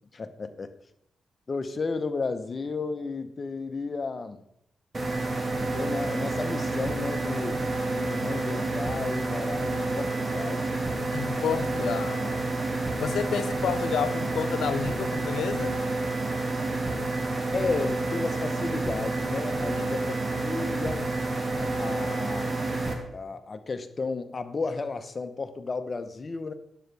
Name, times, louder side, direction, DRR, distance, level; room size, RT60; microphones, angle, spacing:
voice 1, 0.1-0.7 1.5-4.5 5.6-7.6 7.9-10.7 11.8-11.9 13.3-13.4 17.5-21.1 21.6-22.7 23.1-26.5, left 4 dB, 45° left, 0.8 m, -33 dB
sound 1, 4.9-22.9, right 2 dB, 35° right, 1.7 m, -29 dB
voice 2, 11.1-12.5 13.0-15.8 19.9-20.0, left 8 dB, 80° left, 0.5 m, -30 dB
10.5 x 7.6 x 3.4 m
cardioid pair, 70°, 0 cm